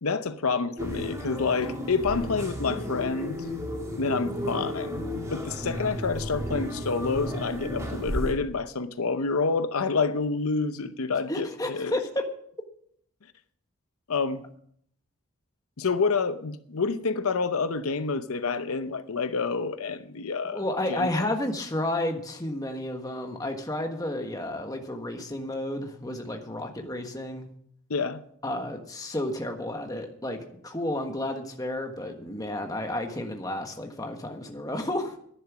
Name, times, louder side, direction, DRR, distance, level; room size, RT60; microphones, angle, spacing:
voice 1, 0.0-3.5 4.0-5.0 5.3-11.9 14.1-14.4 15.8-20.6 20.9-21.3 27.9-28.2, left 4 dB, 80° left, 0.7 m, -28 dB
sound 1, 0.8-8.3, equal, 15° right, 2.0 m, -33 dB
voice 2, 11.3-12.3 20.5-27.5 28.4-35.2, left 1 dB, 15° left, 1.4 m, -31 dB
11.0 x 10.5 x 6.1 m
head